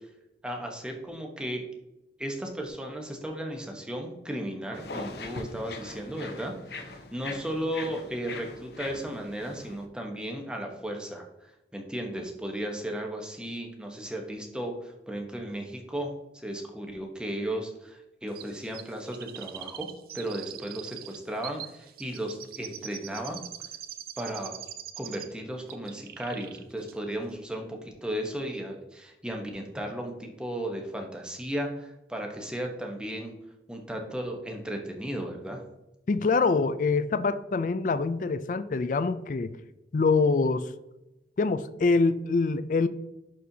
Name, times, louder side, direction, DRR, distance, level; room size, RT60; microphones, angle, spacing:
voice 1, 0.4-1.6 2.2-19.9 20.1-23.5 24.2-24.5 25.0-33.3 33.7-35.6, right 1 dB, 5° right, 2 dB, 1.0 m, -35 dB
sound 1, 4.7-9.8, left 3 dB, 65° left, 0.8 m, -41 dB
Chirp tweet, 18.4-25.4 25.7-26.6 26.9-27.0, right 11 dB, 55° right, 0.5 m, -43 dB
voice 2, 36.1-39.6 39.9-40.7 41.4-42.9, left 4 dB, 45° left, 12 dB, 0.3 m, -25 dB
11.0 x 4.3 x 2.8 m, 0.94 s
head